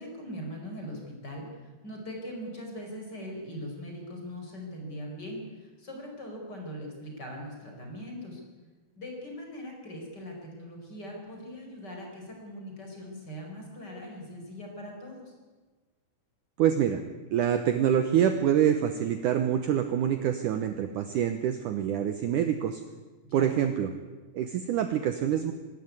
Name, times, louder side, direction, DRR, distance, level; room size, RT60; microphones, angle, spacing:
voice 1, 0.0-1.5 1.8-8.4 9.0-15.3 23.2-23.5, equal, 25° left, 1 dB, 5.2 m, -41 dB
voice 2, 16.6-17.0 17.3-22.8 23.3-23.9 24.3-25.5, right 9 dB, 80° right, 8 dB, 1.9 m, -26 dB
24.5 x 13.0 x 9.6 m, 1.4 s
omnidirectional pair, 4.9 m